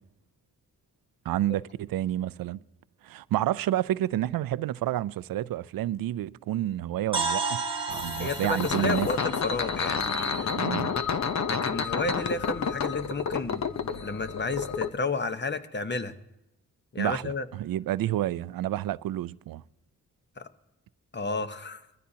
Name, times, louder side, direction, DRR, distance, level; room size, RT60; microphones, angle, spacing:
voice 1, 1.3-2.6 3.0-7.6 7.9-9.1 10.5-11.0 17.0-19.6, right 13 dB, 80° right, 0.5 m, -29 dB
sound 1, 7.1-11.1, right 4 dB, 15° right, 1.5 m, -34 dB
sound 2, 7.9-14.9, left 6 dB, 50° left, 0.9 m, -30 dB
voice 2, 8.2-10.6 11.5-13.6 14.0-16.2 16.9-17.5 20.4-20.5 21.1-21.8, left 3 dB, 30° left, 1.1 m, -32 dB
22.0 x 14.5 x 2.8 m
cardioid pair, 60°, 34 cm